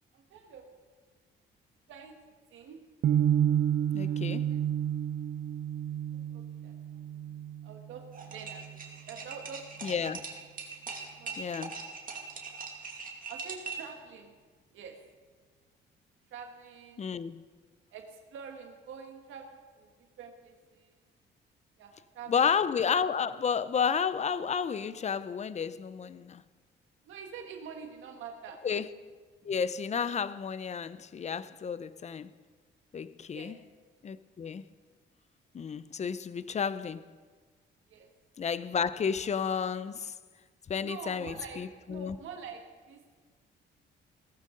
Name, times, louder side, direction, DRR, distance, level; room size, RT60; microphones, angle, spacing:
voice 1, 0.1-0.7 1.9-2.1 2.5-2.8 4.0-4.2 4.5-4.6 4.9-5.1 6.1-8.8 9.1-9.9 11.2-12.0 13.3-14.3 14.7-15.0 16.3-17.1 17.9-21.0 21.8-22.3 27.0-28.6 33.3-33.6 37.9-38.1 40.8-43.2, right 6 dB, 80° right, 1.5 m, -47 dB
sound 1, 3.0-9.1, right 10 dB, 65° right, 0.6 m, -30 dB
voice 2, 3.9-4.5 9.8-10.2 11.4-11.9 17.0-17.4 22.3-26.4 28.6-28.9 29.4-32.3 32.9-33.6 34.0-34.6 35.5-37.1 38.4-40.1 40.7-42.2, left 6 dB, 35° left, 0.6 m, -31 dB
sound 2, 8.1-13.9, right 5 dB, 45° right, 2.3 m, -41 dB
16.5 x 14.0 x 3.8 m
cardioid pair, 90°, 20 cm